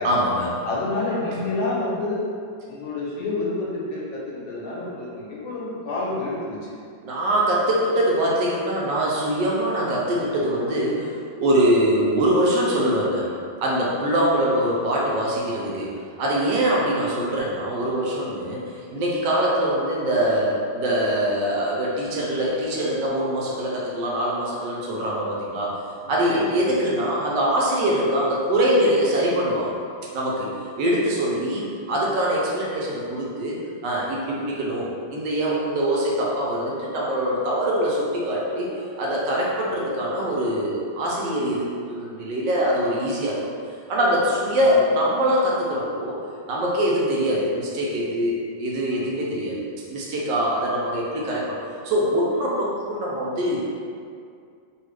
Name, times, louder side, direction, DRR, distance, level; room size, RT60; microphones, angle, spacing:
voice 1, 0.0-0.5 7.0-13.4 13.6-15.9 16.2-18.6 18.9-25.7 26.1-29.8 30.1-30.5 30.8-33.6 33.8-43.4 43.9-46.2 46.5-49.6 49.9-51.6 51.8-53.8, right 1 dB, 75° right, -4 dB, 1.2 m, -23 dB
voice 2, 0.6-2.2 2.7-6.8 26.0-26.9, left 2 dB, 85° left, -5 dB, 1.5 m, -29 dB
3.4 x 2.3 x 3.2 m, 2.3 s
omnidirectional pair, 2.1 m